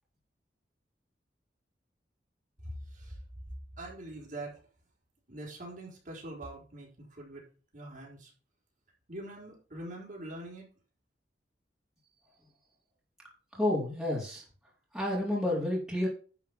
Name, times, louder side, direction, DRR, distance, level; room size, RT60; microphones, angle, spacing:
voice 1, 2.6-3.2 3.8-4.5 5.3-7.4 7.7-8.3 9.1-10.7, right 1 dB, 45° right, -3 dB, 4.5 m, -43 dB
voice 2, 13.5-14.4 14.9-16.1, left 1 dB, 5° right, -5 dB, 4.0 m, -30 dB
11.0 x 5.5 x 5.8 m, 0.37 s
head